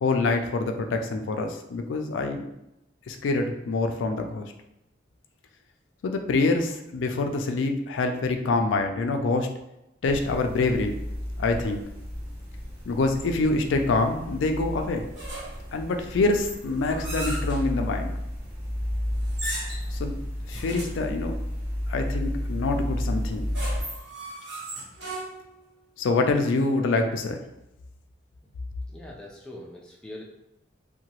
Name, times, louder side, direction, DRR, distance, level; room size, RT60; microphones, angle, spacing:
voice 1, 0.0-2.5 3.1-4.5 6.0-9.5 10.0-10.9 11.4-11.8 12.9-15.1 15.7-18.1 19.9-20.2 20.5-21.4 21.9-23.5 26.0-27.4, left 3 dB, 80° left, 5 dB, 0.4 m, -26 dB
sound 1, 10.1-23.8, left 1 dB, 50° right, 0.8 m, -32 dB
sound 2, 15.1-15.7 16.3-17.6 19.2-20.0 20.5-21.0 23.3-25.6, right 1 dB, 65° right, 1.1 m, -37 dB
voice 2, 28.9-30.2, left 1 dB, 5° left, -3 dB, 0.3 m, -42 dB
2.8 x 2.2 x 2.9 m, 0.88 s
head